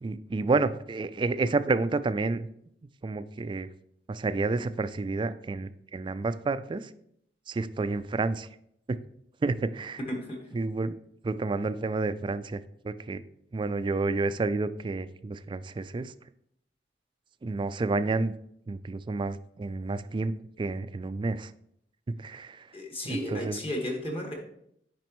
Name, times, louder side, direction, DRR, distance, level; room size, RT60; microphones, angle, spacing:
voice 1, 0.0-2.5 3.0-3.7 4.1-6.9 7.5-8.5 8.9-9.0 9.4-10.0 10.5-11.0 11.2-13.2 13.5-16.1 17.4-18.3 18.7-21.5 22.1-22.7 23.0-23.6, right 3 dB, 30° right, 13 dB, 0.3 m, -30 dB
voice 2, 10.1-10.6 22.7-24.3, left 1 dB, 35° left, 0 dB, 1.6 m, -34 dB
9.0 x 5.2 x 3.1 m, 0.72 s
head